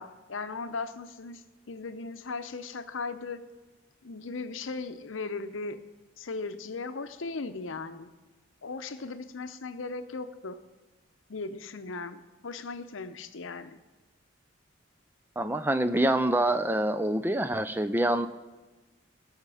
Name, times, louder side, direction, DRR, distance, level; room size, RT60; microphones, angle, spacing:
voice 1, 0.0-3.4 4.0-5.8 6.2-8.1 8.6-10.6 11.3-13.8, left 4 dB, 80° left, 11 dB, 0.7 m, -37 dB
voice 2, 15.4-18.3, right 1 dB, 10° right, 11 dB, 0.4 m, -26 dB
18.5 x 6.6 x 4.9 m, 1.2 s
head